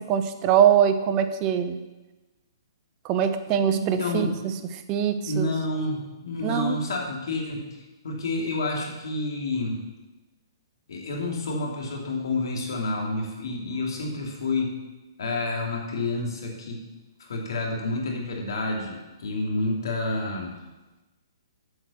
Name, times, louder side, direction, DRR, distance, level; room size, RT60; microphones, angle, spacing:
voice 1, 0.1-1.8 3.0-4.3 4.9-5.5 6.4-6.8, right 9 dB, 30° right, 9 dB, 0.8 m, -22 dB
voice 2, 3.7-4.3 5.3-7.7 8.0-9.8 10.9-14.7 15.2-16.8 17.2-20.5, left 2 dB, 70° left, 0 dB, 2.7 m, -29 dB
8.0 x 6.2 x 7.1 m, 1.1 s
hypercardioid pair, 140°, 2 cm